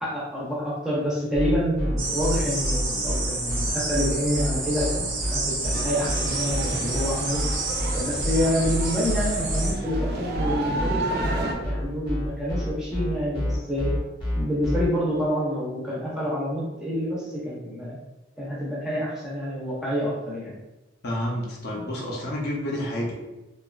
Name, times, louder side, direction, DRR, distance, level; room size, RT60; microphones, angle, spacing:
voice 1, 0.0-7.4 7.9-14.0 14.3-18.0 18.4-20.5, equal, 5° right, -6 dB, 0.6 m, -28 dB
sound 1, 1.3-14.8, equal, 25° left, 0.9 m, -28 dB
sound 2, 2.0-9.7, right 3 dB, 90° right, 0.8 m, -30 dB
sound 3, 5.7-11.5, right 2 dB, 55° right, 0.4 m, -32 dB
voice 2, 21.0-23.1, left 1 dB, 55° left, -2 dB, 0.5 m, -29 dB
2.8 x 2.3 x 2.3 m, 1.1 s
head